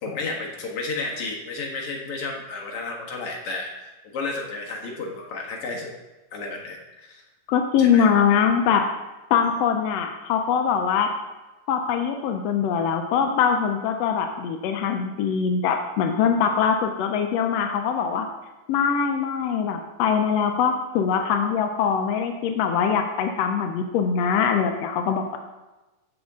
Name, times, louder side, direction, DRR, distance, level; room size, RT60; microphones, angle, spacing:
voice 1, 0.0-5.9 6.3-7.2 7.8-8.1, left 3 dB, 50° left, -1 dB, 2.3 m, -32 dB
voice 2, 7.5-8.8 9.3-11.1 11.7-18.3 18.7-25.2, left 7 dB, 80° left, 4 dB, 1.5 m, -22 dB
15.0 x 6.3 x 3.7 m, 1.1 s
omnidirectional pair, 3.7 m